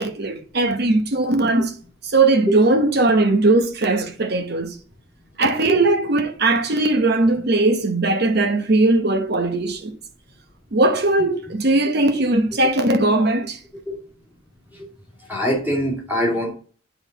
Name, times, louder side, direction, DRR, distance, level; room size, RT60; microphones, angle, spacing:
voice 1, 0.0-1.7 2.0-4.7 5.4-9.9 10.7-13.6, right 2 dB, 55° right, 1.0 m, -19 dB
voice 2, 15.3-16.5, equal, 10° right, 2.5 m, -23 dB
8.8 x 4.0 x 4.0 m
head